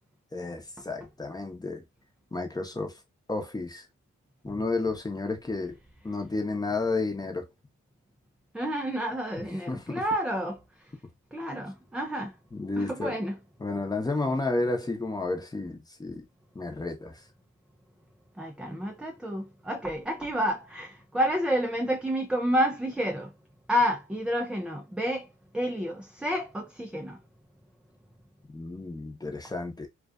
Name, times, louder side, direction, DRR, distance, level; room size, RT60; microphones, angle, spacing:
voice 1, 0.3-1.8 2.3-3.0 3.3-3.9 4.4-5.8 6.0-7.5 9.5-10.0 12.5-13.2 13.6-16.2 16.5-17.2 28.5-29.9, left 3 dB, 15° left, 0.7 m, -31 dB
voice 2, 8.5-10.6 11.3-12.3 12.8-13.3 18.4-23.3 23.7-25.3 25.5-27.2, equal, 5° right, 0.3 m, -29 dB
2.5 x 2.3 x 2.3 m
cardioid pair, 90°, 30 cm